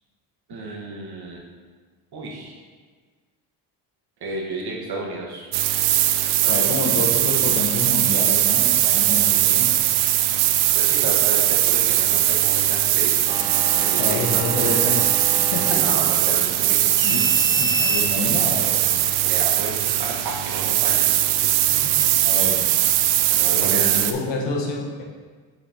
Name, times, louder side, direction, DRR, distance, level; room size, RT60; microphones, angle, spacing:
voice 1, 0.5-1.4 2.1-2.5 4.2-5.5 6.6-6.9 10.7-13.5 13.8-14.7 15.7-16.9 19.2-21.1 21.7-22.0 23.3-24.0, right 2 dB, 55° right, -1 dB, 1.7 m, -32 dB
sound 1, 5.5-24.1, right 13 dB, 85° right, 0.6 m, -20 dB
voice 2, 6.5-9.7 14.0-15.0 15.5-16.0 17.0-18.8 22.2-22.7 23.5-25.0, left 3 dB, 65° left, -1 dB, 1.5 m, -28 dB
coffee machine, 13.3-19.6, equal, 10° right, 0.6 m, -32 dB
6.9 x 4.8 x 3.5 m, 1.5 s
supercardioid pair, 70°, 46 cm